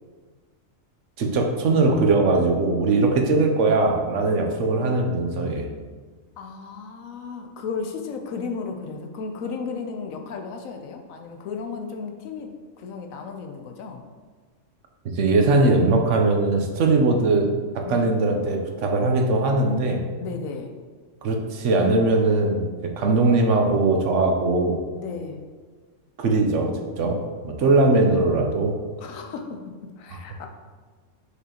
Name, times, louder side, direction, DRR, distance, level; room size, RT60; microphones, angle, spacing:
voice 1, 1.2-5.7 15.1-20.0 21.2-24.8 26.2-28.7, right 3 dB, 70° right, 3 dB, 1.1 m, -20 dB
voice 2, 6.4-14.0 17.8-18.1 20.2-20.7 25.0-25.4 27.6-28.2 29.0-30.5, left 5 dB, 90° left, 4 dB, 1.1 m, -34 dB
6.4 x 5.0 x 2.9 m, 1.5 s
omnidirectional pair, 1.4 m